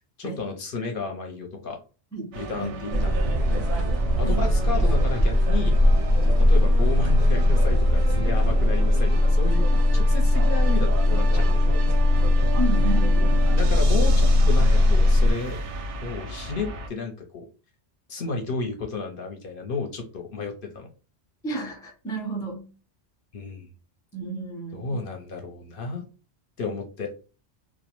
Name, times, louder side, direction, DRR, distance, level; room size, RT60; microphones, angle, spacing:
voice 1, 0.2-1.8 2.3-3.7 3.9-5.8 6.3-11.8 13.5-15.6 16.0-17.4 18.1-20.9 23.3-23.7 24.7-26.0 26.6-27.1, left 4 dB, 60° left, 3 dB, 0.7 m, -32 dB
voice 2, 2.1-2.8 4.2-4.5 12.6-13.5 21.4-22.7 24.1-25.2, right 2 dB, 5° left, 1 dB, 0.3 m, -32 dB
sound 1, 2.3-16.9, right 3 dB, 90° right, 0.9 m, -36 dB
sound 2, 2.9-15.3, left 1 dB, 60° right, 0.6 m, -19 dB
2.4 x 2.0 x 2.9 m, 0.34 s
omnidirectional pair, 1.1 m